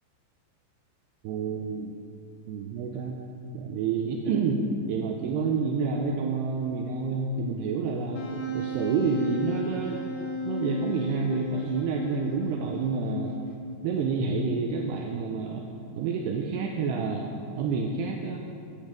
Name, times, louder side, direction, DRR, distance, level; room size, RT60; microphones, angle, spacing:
voice 1, 1.2-1.9 2.5-3.2 3.5-8.3 8.5-10.0 10.5-13.4 13.8-15.7 15.9-17.3 17.5-18.4, right 5 dB, 80° right, 2 dB, 2.6 m, -29 dB
Wind instrument woodwind instrument, 8.1-13.8, left 1 dB, 85° left, 3.0 m, -34 dB
8.8 x 8.5 x 5.0 m, 2.5 s
omnidirectional pair, 5.0 m